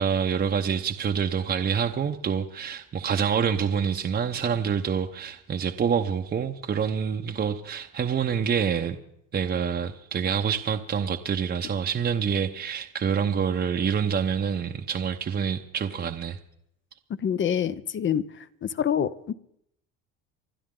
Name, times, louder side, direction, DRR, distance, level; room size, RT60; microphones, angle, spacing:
voice 1, 0.0-9.0 9.3-16.4, right 7 dB, 30° right, 0.9 m, -26 dB
voice 2, 17.2-19.3, left 8 dB, 35° left, 0.7 m, -27 dB
28.0 x 11.5 x 3.8 m
supercardioid pair, 105°, 35 cm